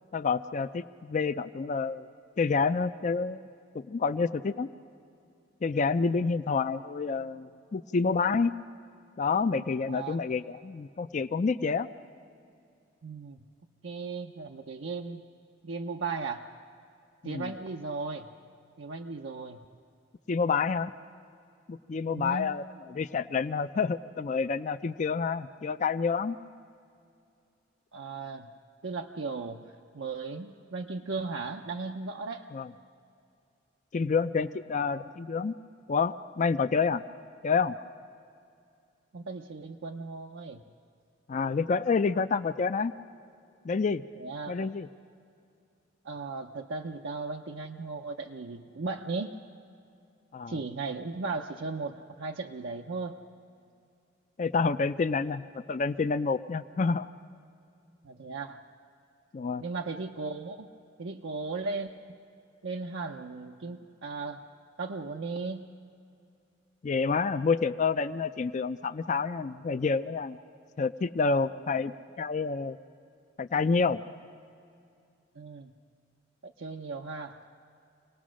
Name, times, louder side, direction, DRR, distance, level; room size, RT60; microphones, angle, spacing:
voice 1, 0.1-2.1 2.4-3.4 3.7-4.7 5.6-8.5 9.2-11.9 17.2-17.5 20.3-20.9 21.7-22.6 22.9-26.4 32.5-32.7 33.9-35.5 35.9-37.0 37.4-37.8 41.3-42.9 43.6-44.0 44.5-44.9 50.3-50.6 54.4-57.1 59.3-59.6 66.8-70.4 70.8-71.9 72.2-72.8 73.4-74.0, left 4 dB, 40° left, 10 dB, 0.4 m, -28 dB
voice 2, 9.9-10.2 13.0-13.4 13.8-15.2 15.6-16.5 17.2-18.3 18.8-19.6 22.1-22.6 27.9-28.5 28.8-29.6 29.9-32.5 39.1-40.6 44.2-44.7 46.0-49.3 50.5-53.2 58.0-58.6 59.6-60.7 61.0-62.2 62.6-64.4 64.8-65.7 75.4-75.7 76.4-77.4, right 4 dB, 75° right, 3 dB, 0.7 m, -36 dB
26.0 x 18.5 x 6.3 m, 2.5 s
head